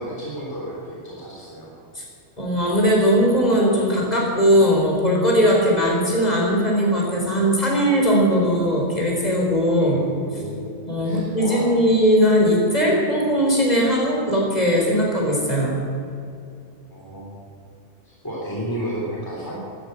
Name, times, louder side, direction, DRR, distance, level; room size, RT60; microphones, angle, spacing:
voice 1, 0.0-1.7 9.8-11.7 16.9-17.3 18.0-19.6, right 1 dB, 20° left, -5 dB, 3.2 m, -32 dB
voice 2, 2.4-10.0 10.8-15.8, equal, 35° left, -3 dB, 4.4 m, -19 dB
14.5 x 12.5 x 8.0 m, 2.5 s
omnidirectional pair, 1.2 m